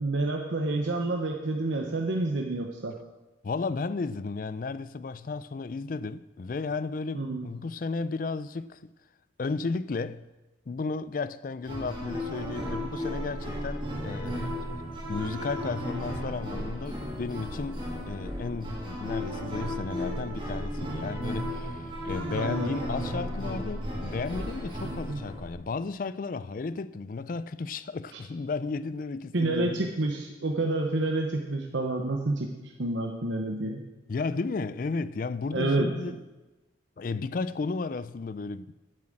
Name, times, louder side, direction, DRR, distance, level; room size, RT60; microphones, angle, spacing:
voice 1, 0.0-2.9 7.1-7.5 22.3-22.7 24.8-25.2 29.3-32.5 32.8-33.8 35.5-36.1, right 2 dB, 75° right, 1.0 m, -29 dB
voice 2, 3.4-8.9 9.4-10.2 10.7-14.5 15.1-29.9 34.1-36.2 37.0-38.7, left 4 dB, 45° left, 0.4 m, -34 dB
sound 1, 11.6-25.6, equal, 25° right, 2.7 m, -34 dB
10.0 x 7.3 x 7.7 m
head